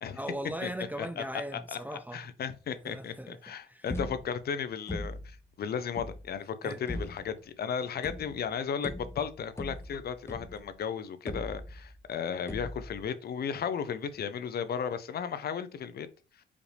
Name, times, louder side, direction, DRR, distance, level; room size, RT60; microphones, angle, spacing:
voice 1, 0.1-2.3 2.8-3.9 6.6-6.8, right 1 dB, 10° right, 0.3 m, -39 dB
voice 2, 2.1-16.1, left 7 dB, 50° left, 0.6 m, -35 dB
sound 1, 3.9-4.5 4.9-5.4 5.9-6.3 6.9-7.4 8.0-8.5 8.8-10.7 11.3-12.0 12.5-13.0, left 1 dB, 15° left, 0.8 m, -39 dB
5.0 x 2.6 x 3.3 m
cardioid pair, 90°, 20 cm